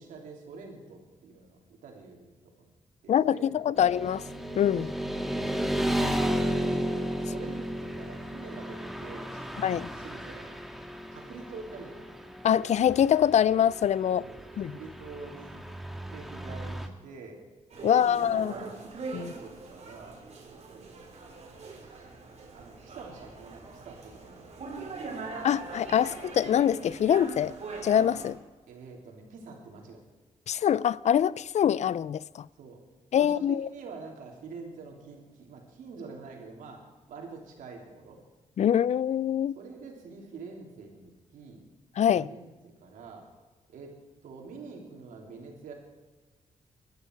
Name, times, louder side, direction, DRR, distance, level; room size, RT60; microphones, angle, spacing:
voice 1, 0.0-2.3 2.6-2.7 3.0-3.8 4.8-5.0 7.1-10.6 11.1-12.1 14.2-15.7 16.1-17.4 17.8-18.8 19.1-20.2 20.5-21.0 21.6-22.1 22.5-25.1 28.7-30.0 32.6-32.8 33.1-38.2 39.5-41.6 42.2-42.5 42.8-43.3 43.7-43.9 44.2-45.7, right 4 dB, 85° right, 3.3 m, -46 dB
voice 2, 3.1-4.2 4.6-4.9 9.6-9.9 12.4-14.2 14.6-14.7 17.8-18.5 19.1-19.3 25.4-27.5 27.8-28.4 30.5-32.5 33.1-33.7 38.6-39.5 42.0-42.3, left 9 dB, 60° left, 0.4 m, -24 dB
Motorcycle / Traffic noise roadway noise, 3.8-16.9, equal, ahead, 1.7 m, -34 dB
sound 1, 17.7-28.3, right 3 dB, 55° right, 3.8 m, -42 dB
20.0 x 13.0 x 4.7 m
cardioid pair, 70°, 13 cm